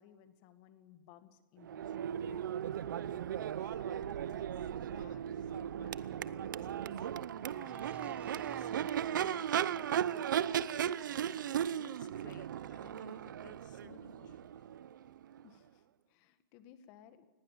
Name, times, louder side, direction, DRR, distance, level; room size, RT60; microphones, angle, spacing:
voice 1, 0.0-2.0 2.3-2.9 15.4-17.2, left 9 dB, 30° left, 10 dB, 1.8 m, -60 dB
Crowd / Race car auto racing / Accelerating revving vroom, 1.6-15.5, right 9 dB, 65° right, 0.8 m, -37 dB
voice 2, 3.5-14.6, left 8 dB, 60° left, 8 dB, 2.3 m, -60 dB
sound 1, 5.4-9.8, right 6 dB, 10° right, 0.7 m, -59 dB
27.0 x 20.0 x 7.5 m, 1.2 s
hypercardioid pair, 165°, 11 cm